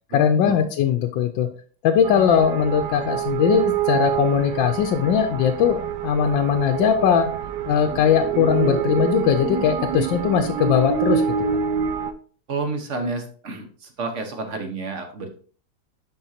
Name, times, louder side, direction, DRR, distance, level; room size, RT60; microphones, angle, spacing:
voice 1, 0.1-1.5 1.8-5.8 6.0-7.3 7.7-11.2, left 8 dB, 75° left, 5 dB, 1.3 m, -20 dB
sound 1, 2.0-12.1, right 8 dB, 70° right, 1.1 m, -26 dB
voice 2, 12.5-15.3, right 3 dB, 45° right, 5 dB, 1.2 m, -30 dB
11.5 x 4.5 x 2.7 m, 0.42 s
omnidirectional pair, 2.2 m